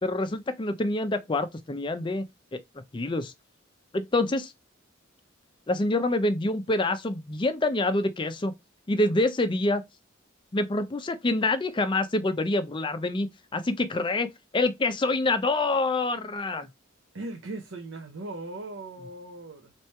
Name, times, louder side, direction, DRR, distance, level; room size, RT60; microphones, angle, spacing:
voice 1, 0.0-2.2 2.5-2.6 2.9-3.3 3.9-4.5 5.7-8.5 8.9-9.8 10.5-13.3 13.5-16.7, left 2 dB, 25° left, 0.4 m, -26 dB
voice 2, 17.1-19.7, right 2 dB, 70° right, 0.7 m, -38 dB
3.3 x 3.1 x 4.2 m
head